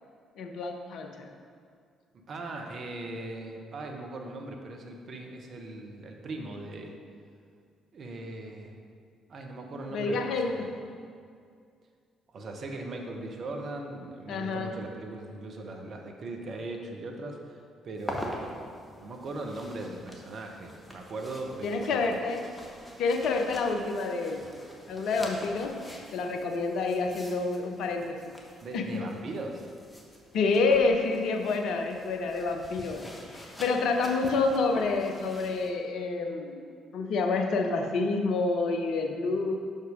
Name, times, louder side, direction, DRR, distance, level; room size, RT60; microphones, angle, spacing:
voice 1, 0.4-1.3 9.9-10.6 14.3-14.7 21.6-22.4 23.0-24.4 24.9-25.7 26.1-28.2 28.7-28.8 30.3-33.0 33.6-36.6 36.9-39.5, left 3 dB, 60° left, 4 dB, 0.7 m, -28 dB
voice 2, 2.1-7.0 7.9-8.8 9.3-10.8 12.3-18.5 19.0-22.0 28.6-29.7, right 2 dB, 50° right, 2 dB, 0.9 m, -39 dB
sound 1, 18.0-35.7, equal, 15° left, 1.3 m, -45 dB
6.0 x 5.5 x 5.1 m, 2.2 s
figure-of-eight pair, 45°, 0 cm